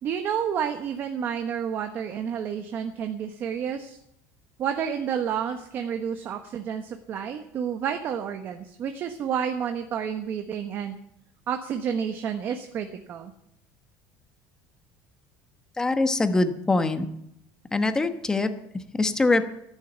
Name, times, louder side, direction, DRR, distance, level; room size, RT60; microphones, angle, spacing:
voice 1, 0.0-4.0 4.6-11.0 11.5-13.3, right 8 dB, 40° right, 6 dB, 1.1 m, -30 dB
voice 2, 15.8-17.1 17.7-19.4, left 2 dB, 10° left, 8 dB, 1.1 m, -24 dB
14.0 x 11.5 x 8.0 m, 0.77 s
cardioid pair, 160°, 6 cm